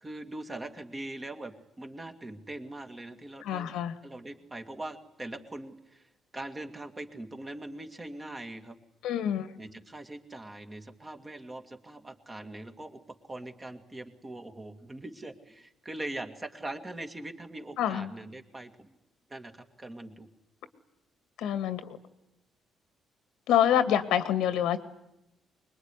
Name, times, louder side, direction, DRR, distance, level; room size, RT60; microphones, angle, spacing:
voice 1, 0.0-3.7 4.0-8.8 9.6-13.0 13.3-18.9 19.3-20.3, right 2 dB, 15° right, 6 dB, 2.2 m, -42 dB
voice 2, 3.4-4.0 9.0-9.5 17.8-18.1 21.4-22.0 23.5-24.8, left 10 dB, 90° left, 11 dB, 2.1 m, -26 dB
25.0 x 22.0 x 9.9 m, 0.89 s
cardioid pair, 145°, 0 cm